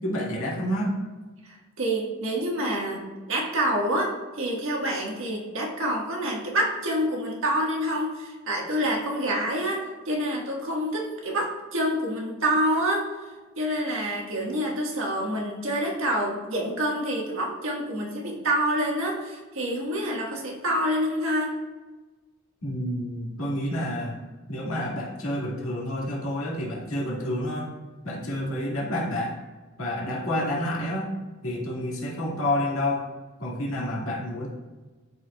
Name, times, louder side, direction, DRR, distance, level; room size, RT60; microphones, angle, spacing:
voice 1, 0.0-1.0 22.6-24.2 24.5-27.7 28.0-29.3 29.8-31.1 31.4-33.1 33.4-34.5, left 1 dB, 75° left, -5 dB, 2.0 m, -29 dB
voice 2, 1.4-13.1 13.5-21.6, right 1 dB, 65° right, -1 dB, 1.5 m, -27 dB
11.5 x 4.6 x 2.3 m, 1.3 s
head